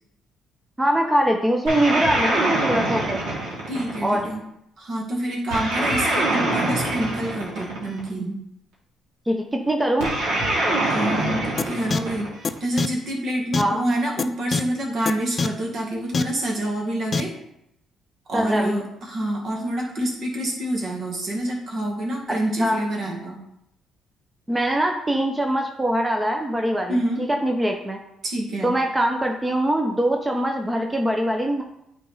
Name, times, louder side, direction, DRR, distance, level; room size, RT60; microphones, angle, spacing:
voice 1, 0.8-3.4 4.0-4.3 9.3-10.1 13.6-13.8 18.3-18.8 22.6-22.9 24.5-27.0 27.4-28.0 28.6-31.6, right 1 dB, 15° right, 2 dB, 0.8 m, -22 dB
sound 1, 1.7-4.3 5.5-8.1 10.0-12.6, right 1 dB, 90° right, 2.3 m, -24 dB
voice 2, 3.7-4.4 4.8-8.4 10.9-12.3 12.6-17.3 18.3-23.4 26.9-27.3 28.2-28.7, right 1 dB, 55° right, -1 dB, 2.1 m, -27 dB
sound 2, 11.6-11.7 11.9-12.0 12.4-12.5 12.8-12.9 13.5-13.6 14.2-14.3 14.5-14.6 15.1-15.2 15.4-15.5 16.1-16.2 17.1-17.2, left 4 dB, 40° left, 0.4 m, -22 dB
9.1 x 3.9 x 4.0 m, 0.80 s
supercardioid pair, 75°, 0 cm